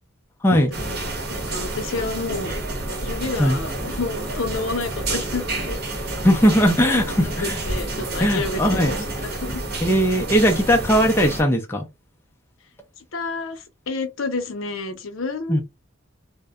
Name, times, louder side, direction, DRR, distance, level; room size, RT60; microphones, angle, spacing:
voice 1, 0.5-2.6 3.0-5.8 6.8-9.6 13.1-15.6, left 3 dB, 70° left, 0.6 m, -30 dB
sound 1, 0.7-11.4, right 2 dB, 50° right, 0.8 m, -29 dB
voice 2, 6.2-7.6 8.2-8.9 9.8-11.9 15.5-15.6, equal, 10° left, 0.4 m, -18 dB
2.6 x 2.0 x 2.3 m
head